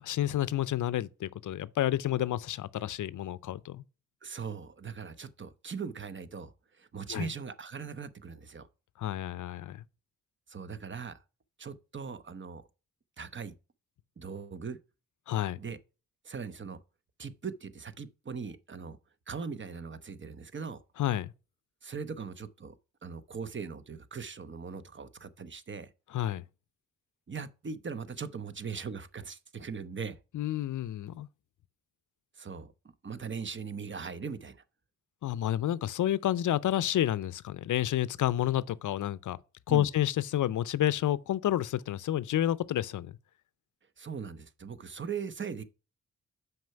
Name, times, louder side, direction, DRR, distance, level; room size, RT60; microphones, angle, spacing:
voice 1, 0.0-3.8 7.1-7.3 9.0-9.8 15.3-15.6 21.0-21.3 26.1-26.4 30.3-31.3 35.2-39.4 39.7-43.2, left 12 dB, 65° left, 0.5 m, -30 dB
voice 2, 4.2-8.7 10.5-11.2 11.6-12.6 13.2-13.5 14.2-14.8 15.6-15.8 16.2-16.8 17.2-19.0 19.3-20.8 21.8-22.7 23.0-25.9 27.3-30.2 32.4-32.7 33.0-34.6 39.7-39.9 44.0-45.6, right 5 dB, 35° right, 0.8 m, -40 dB
6.2 x 4.7 x 5.7 m
supercardioid pair, 45°, 34 cm